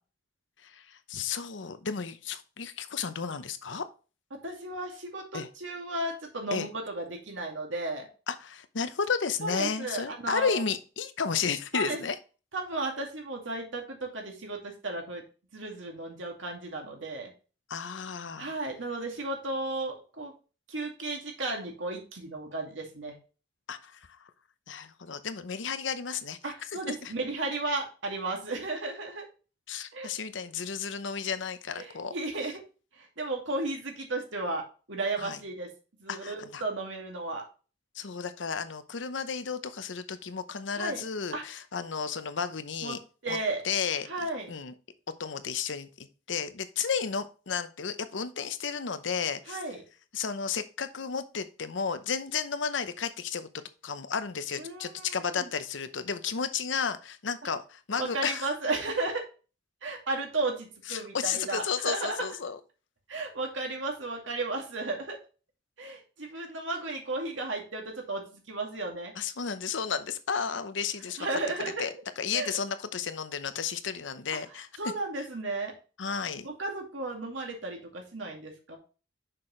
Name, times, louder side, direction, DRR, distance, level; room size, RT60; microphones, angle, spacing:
voice 1, 0.6-3.8 5.3-5.5 6.5-6.7 8.3-12.2 17.7-18.5 23.7-24.0 24.7-26.4 26.9-27.1 29.7-32.1 35.2-35.4 36.1-36.6 37.9-43.0 43.3-43.4 43.6-44.7 45.2-49.6 50.1-53.5 53.8-58.5 60.9-62.6 69.2-71.9 72.2-74.7 76.0-76.5, left 6 dB, 80° left, 11 dB, 0.7 m, -33 dB
voice 2, 4.3-8.1 9.4-10.6 11.7-12.0 12.5-15.2 15.5-17.3 18.4-20.3 20.7-23.2 26.4-29.2 29.9-30.1 30.3-30.4 31.7-32.6 33.0-35.7 36.0-37.4 40.7-41.0 41.3-41.4 42.8-43.0 43.2-43.6 44.1-44.5 49.5-49.8 54.6-55.1 55.4-55.5 58.0-59.2 59.8-62.3 63.1-65.2 65.8-69.1 71.2-71.8 72.3-72.5 74.8-75.7 76.4-78.8, right 2 dB, 85° right, 1 dB, 2.3 m, -34 dB
6.7 x 5.8 x 3.2 m, 0.34 s
head